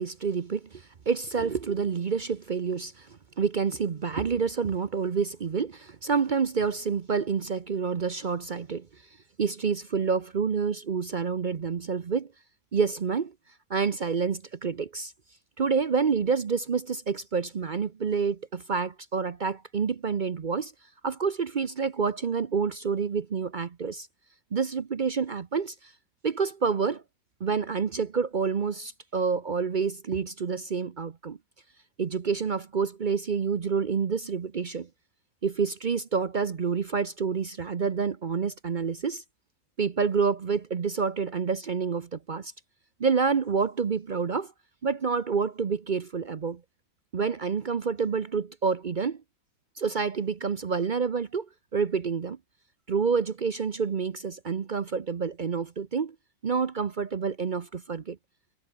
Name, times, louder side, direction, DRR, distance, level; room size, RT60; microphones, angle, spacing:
voice 1, 0.0-8.9 9.4-12.3 12.7-13.3 13.7-15.1 15.6-20.7 21.0-24.1 24.5-25.9 26.2-27.0 27.4-31.4 32.0-34.9 35.4-39.2 39.8-42.5 43.0-44.5 44.8-46.6 47.1-49.2 49.8-51.5 51.7-52.4 52.9-56.1 56.4-58.2, right 5 dB, 60° right, 0.5 m, -28 dB
omnidirectional pair, 2.0 m